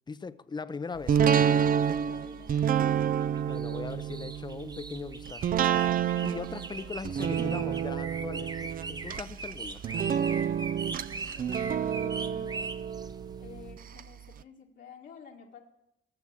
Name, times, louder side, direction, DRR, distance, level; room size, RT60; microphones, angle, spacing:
voice 1, 0.1-1.5 3.5-5.6 6.2-9.8, left 4 dB, 20° left, 0.6 m, -39 dB
sound 1, 1.1-14.0 14.4-14.5, right 8 dB, 45° right, 0.4 m, -29 dB
voice 2, 1.9-2.9 4.0-4.4 11.3-12.7 13.4-15.6, left 6 dB, 65° left, 1.9 m, -50 dB
sound 2, 1.9-13.7, right 3 dB, 20° right, 0.7 m, -42 dB
14.0 x 7.0 x 8.5 m
cardioid pair, 90°, 20 cm